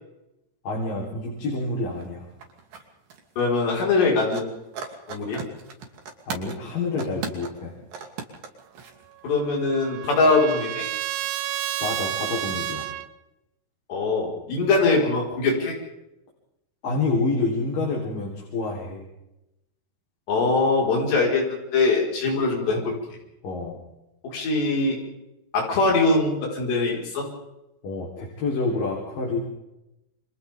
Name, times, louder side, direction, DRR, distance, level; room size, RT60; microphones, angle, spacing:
voice 1, 0.6-2.3 6.3-7.7 11.8-12.9 16.8-19.0 23.4-23.8 27.8-29.4, left 3 dB, 55° left, -2 dB, 5.2 m, -28 dB
sound 1, 1.6-1.7 1.9-2.9 3.1-4.1 4.3-6.6 6.9-9.3 9.6-9.7, right 6 dB, 60° right, 4.3 m, -37 dB
voice 2, 3.4-4.5 5.1-5.4 9.2-10.9 13.9-15.7 20.3-22.9 24.2-25.0 25.5-27.3, left 3 dB, 80° left, -2 dB, 7.0 m, -22 dB
Trumpet, 9.2-13.1, right 14 dB, 85° right, 3.1 m, -31 dB
29.5 x 26.0 x 3.6 m, 0.90 s
omnidirectional pair, 4.8 m